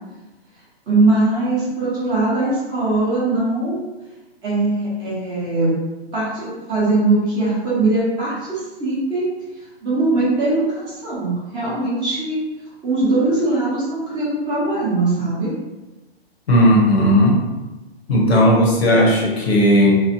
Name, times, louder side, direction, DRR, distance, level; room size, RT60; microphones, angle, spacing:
voice 1, 0.9-3.9 4.4-5.7 6.1-9.2 9.8-12.4 12.8-15.5, right 2 dB, 15° right, -9 dB, 0.8 m, -20 dB
voice 2, 16.5-17.4 18.1-20.0, equal, 75° left, -1 dB, 1.0 m, -15 dB
3.0 x 2.0 x 2.8 m, 1.1 s
hypercardioid pair, 140°, 32 cm